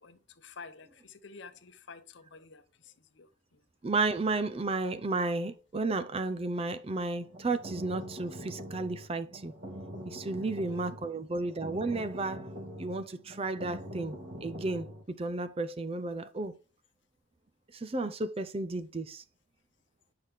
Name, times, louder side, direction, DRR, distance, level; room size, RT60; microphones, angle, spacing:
voice 1, 0.0-3.3 10.4-10.5, left 4 dB, 65° left, 0.8 m, -50 dB
voice 2, 3.8-9.5 10.1-16.5 17.7-19.2, right 3 dB, 30° right, 0.5 m, -33 dB
sound 1, 7.2-15.0, equal, 55° right, 2.2 m, -44 dB
8.2 x 5.8 x 3.5 m
head